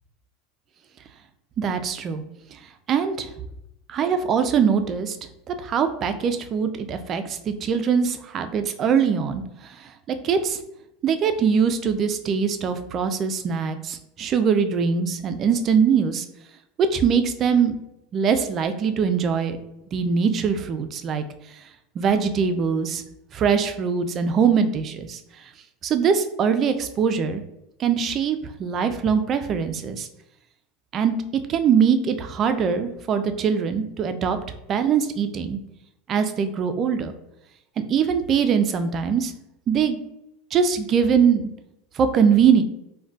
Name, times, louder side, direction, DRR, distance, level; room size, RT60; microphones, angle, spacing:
voice 1, 1.6-2.2 2.9-3.3 3.9-5.2 5.5-10.6 11.0-16.3 16.8-17.8 18.1-19.6 19.9-21.2 22.0-23.0 23.3-25.2 25.8-27.4 27.8-30.1 30.9-31.1 31.5-34.4 34.7-35.6 36.1-37.1 37.9-39.3 39.7-40.0 40.5-41.5 42.0-42.6, right 6 dB, 35° right, 9 dB, 0.3 m, -22 dB
3.8 x 2.1 x 2.3 m, 0.87 s
supercardioid pair, 120°, 0 cm